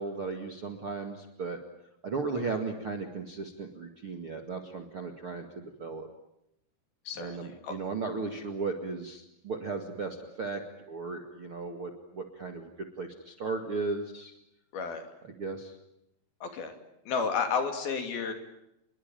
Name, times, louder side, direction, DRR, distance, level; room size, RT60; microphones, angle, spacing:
voice 1, 0.0-1.6 2.0-6.1 7.2-10.6 10.9-12.7 13.0-14.3 15.4-15.7, right 4 dB, 45° right, 4 dB, 2.0 m, -36 dB
voice 2, 7.1-7.8 14.7-15.0 16.4-16.7 17.1-18.3, left 5 dB, 55° left, 6 dB, 4.2 m, -32 dB
28.0 x 22.5 x 9.0 m, 0.81 s
omnidirectional pair, 5.3 m